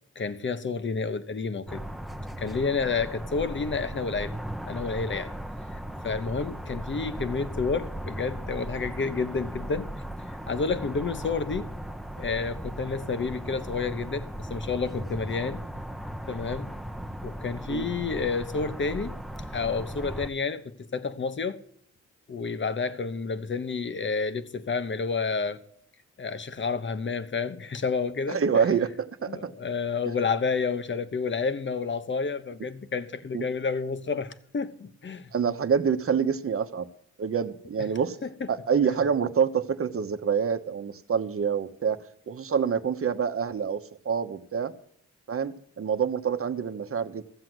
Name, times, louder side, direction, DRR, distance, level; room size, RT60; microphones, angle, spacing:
voice 1, 0.1-1.8 2.4-4.3 4.6-5.3 5.7-9.9 10.3-11.7 12.2-15.6 16.3-16.7 17.2-19.2 19.5-21.6 22.3-25.6 26.2-28.4 29.3-35.3, left 4 dB, 40° left, 1.1 m, -30 dB
sound 1, 1.7-20.3, right 1 dB, ahead, 0.8 m, -37 dB
voice 2, 28.3-29.5 33.3-33.5 35.3-36.9 37.2-38.2 38.5-44.7 45.3-47.2, right 6 dB, 50° right, 1.1 m, -27 dB
15.0 x 7.7 x 7.8 m
cardioid pair, 90°, 29 cm